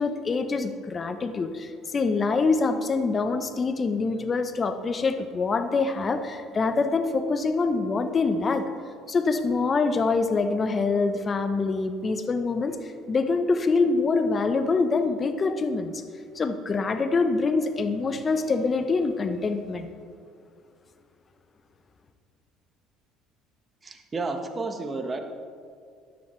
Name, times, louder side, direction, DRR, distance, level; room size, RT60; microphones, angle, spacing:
voice 1, 0.0-8.7 9.1-16.0 16.3-19.9, left 4 dB, 35° left, 9 dB, 1.0 m, -25 dB
voice 2, 23.8-25.2, right 3 dB, 30° right, 5 dB, 1.4 m, -31 dB
13.0 x 10.0 x 3.3 m, 2.2 s
hypercardioid pair, 65°, 0 cm